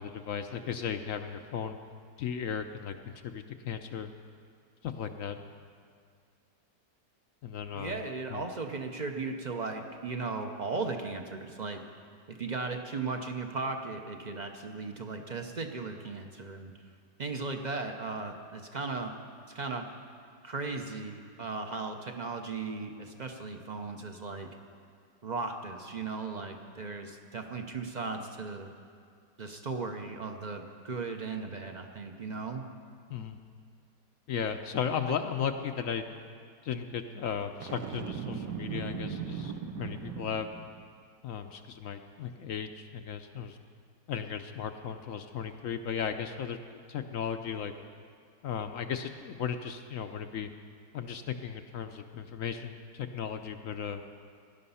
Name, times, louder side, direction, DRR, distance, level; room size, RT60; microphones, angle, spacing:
voice 1, 0.0-1.8 2.2-4.1 4.8-5.4 7.4-7.9 8.3-8.4 33.1-33.4 34.3-36.0 36.6-40.5 41.2-43.6 44.1-47.7 48.4-50.5 50.9-54.0, left 7 dB, 65° left, 7 dB, 0.8 m, -36 dB
voice 2, 7.7-11.8 12.3-16.7 17.2-19.1 19.5-19.9 20.4-24.5 25.2-28.7 29.4-32.7 35.1-35.2, right 3 dB, 50° right, 4 dB, 0.5 m, -37 dB
Boom, 37.6-40.8, right 7 dB, 90° right, 1.5 m, -38 dB
17.5 x 11.5 x 5.6 m, 2.2 s
omnidirectional pair, 1.9 m